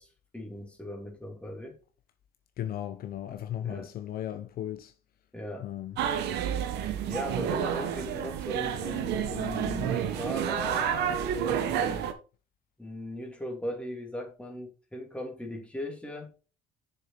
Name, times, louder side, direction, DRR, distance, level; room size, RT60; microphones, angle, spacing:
voice 1, 0.0-1.8 3.6-3.9 5.3-5.7 7.1-12.1 12.8-16.3, left 1 dB, 5° left, 2.7 m, -38 dB
voice 2, 2.6-4.9 5.6-6.0, left 11 dB, 60° left, 0.9 m, -36 dB
sound 1, 6.0-12.1, right 9 dB, 80° right, 1.2 m, -30 dB
6.9 x 6.8 x 4.4 m
cardioid pair, 110°, 17 cm